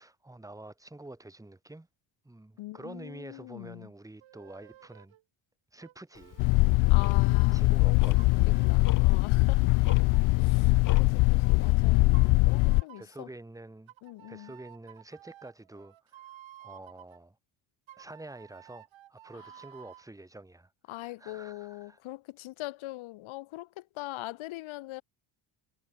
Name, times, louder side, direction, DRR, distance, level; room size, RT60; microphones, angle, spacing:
voice 1, 0.0-1.9 2.2-5.1 5.7-6.4 7.5-8.4 9.7-9.8 13.0-13.9 14.3-17.4 18.0-22.0, right 2 dB, 5° right, 2.2 m, -48 dB
voice 2, 2.6-3.9 6.9-8.0 8.5-9.6 10.3-12.1 12.5-13.3 14.0-14.5 20.9-25.0, left 18 dB, 70° left, 1.0 m, -42 dB
sound 1, 4.2-5.2 5.8-9.2 9.9-11.8 12.1-13.2 13.9-17.2 17.9-20.1, right 13 dB, 65° right, 3.8 m, -54 dB
Tick-tock, 6.1-11.7, left 11 dB, 40° left, 0.9 m, -46 dB
sound 2, 6.4-12.8, left 24 dB, 90° left, 0.6 m, -22 dB
cardioid pair, 135°, 49 cm